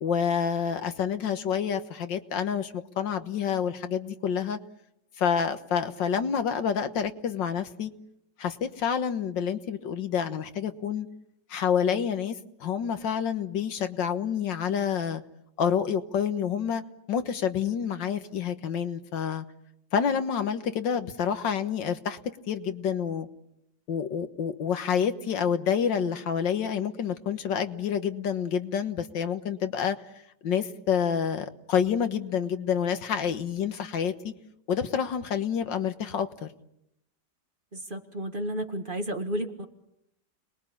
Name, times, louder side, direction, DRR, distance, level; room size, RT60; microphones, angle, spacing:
voice 1, 0.0-4.6 5.2-7.9 8.4-11.1 11.5-15.2 15.6-16.8 17.1-19.4 19.9-22.2 22.5-23.3 23.9-30.0 30.4-34.3 34.7-36.5, left 7 dB, 85° left, 9 dB, 2.0 m, -28 dB
voice 2, 37.7-39.7, right 1 dB, 30° right, 5 dB, 1.9 m, -32 dB
30.0 x 21.5 x 8.6 m, 0.82 s
omnidirectional pair, 1.9 m